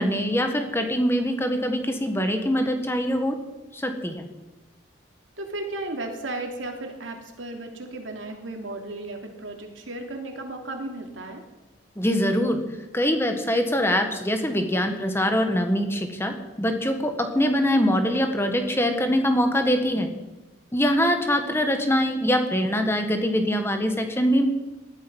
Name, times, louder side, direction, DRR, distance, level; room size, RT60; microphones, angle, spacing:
voice 1, 0.0-3.4 3.7-4.3 12.0-12.6 12.9-20.1 20.7-24.4, equal, 15° left, 6 dB, 1.5 m, -23 dB
voice 2, 5.4-11.4, right 2 dB, 85° right, 3 dB, 2.9 m, -34 dB
19.5 x 13.0 x 5.5 m, 1.1 s
head